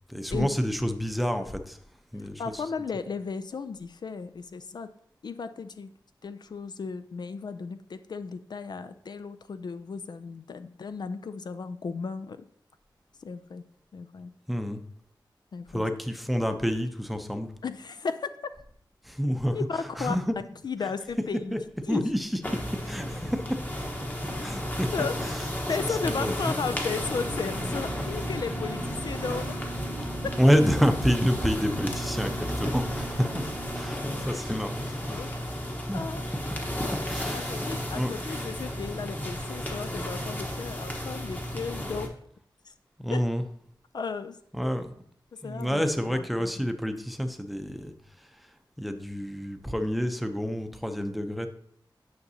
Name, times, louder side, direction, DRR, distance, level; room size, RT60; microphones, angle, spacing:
voice 1, 0.1-1.8 2.1-2.6 14.5-14.8 15.7-17.5 19.0-19.6 20.0-20.3 21.5-21.6 21.9-22.4 22.9-23.6 24.4-24.9 25.2-25.4 25.8-26.5 30.4-33.4 33.7-35.2 35.9-36.0 37.1-37.5 37.9-38.1 43.0-43.4 44.5-44.9 45.4-47.9 48.2-48.5 48.8-51.5, equal, ahead, 7 dB, 0.6 m, -28 dB
voice 2, 2.2-4.9 5.2-5.9 6.2-12.4 13.2-13.6 13.9-14.3 15.5-15.8 17.6-18.3 19.5-20.2 20.6-21.5 21.9-22.0 24.9-25.1 25.7-29.8 30.2-30.3 35.1-35.4 35.9-36.2 37.3-42.1 42.7-42.8 43.1-43.2 43.9-44.4 45.4-46.7, left 5 dB, 60° left, 10 dB, 0.4 m, -35 dB
sound 1, 22.4-42.1, equal, 20° left, 1.1 m, -33 dB
sound 2, 27.6-34.0, right 3 dB, 40° right, 0.6 m, -40 dB
9.4 x 5.8 x 2.8 m, 0.66 s
wide cardioid pair, 90°, 8 cm